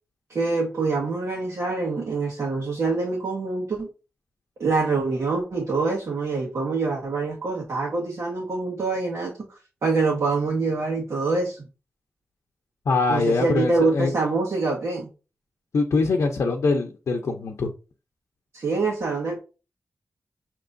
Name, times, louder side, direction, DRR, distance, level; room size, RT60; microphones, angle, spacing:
voice 1, 0.3-3.9 4.6-11.6 13.1-15.1 18.5-19.4, right 3 dB, 75° right, -4 dB, 1.3 m, -25 dB
voice 2, 12.9-14.1 15.7-17.7, left 3 dB, 90° left, 2 dB, 0.6 m, -23 dB
6.8 x 2.9 x 2.5 m, 0.33 s
wide cardioid pair, 75°, 5 cm